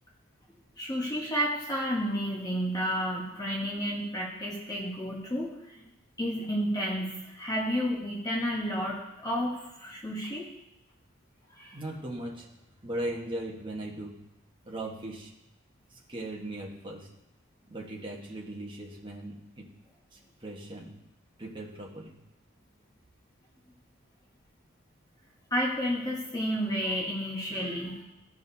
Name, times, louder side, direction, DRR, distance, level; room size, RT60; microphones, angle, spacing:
voice 1, 0.8-5.9 6.2-10.5 11.5-11.8 25.5-28.0, equal, 20° left, -3 dB, 1.0 m, -31 dB
voice 2, 11.7-12.5 12.8-14.2 14.6-15.3 15.9-17.1 17.7-19.7 20.1-20.9 21.4-22.1, right 1 dB, 25° right, -2 dB, 1.2 m, -38 dB
14.5 x 4.9 x 2.7 m, 0.90 s
head